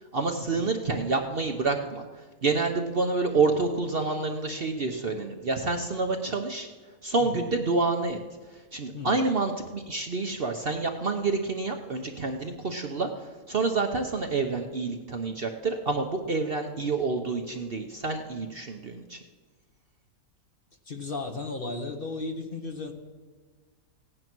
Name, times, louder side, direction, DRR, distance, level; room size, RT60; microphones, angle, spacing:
voice 1, 0.1-2.1 2.4-6.7 7.0-8.2 8.7-13.1 13.5-19.2, right 3 dB, 45° right, 4 dB, 0.9 m, -28 dB
voice 2, 20.9-22.9, left 3 dB, 40° left, 4 dB, 1.1 m, -35 dB
16.5 x 9.9 x 6.1 m, 1.4 s
omnidirectional pair, 1.7 m